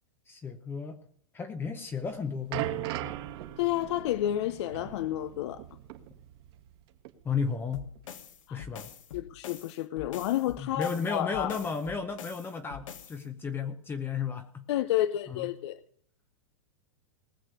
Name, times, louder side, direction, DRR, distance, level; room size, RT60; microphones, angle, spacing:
voice 1, 0.3-1.0 1.3-3.1 7.2-7.9 8.5-8.9 10.6-14.7 15.3-15.5, left 5 dB, 15° left, 0.8 m, -34 dB
sound 1, 1.9-6.8 7.0-7.2 8.0-8.1, right 14 dB, 50° right, 1.6 m, -39 dB
voice 2, 3.6-5.6 8.5-8.6 9.1-11.6 14.7-15.8, left 13 dB, 55° left, 0.7 m, -30 dB
sound 2, 7.7-13.2, left 8 dB, 75° left, 1.6 m, -45 dB
19.5 x 6.6 x 6.8 m
hypercardioid pair, 150°, 17 cm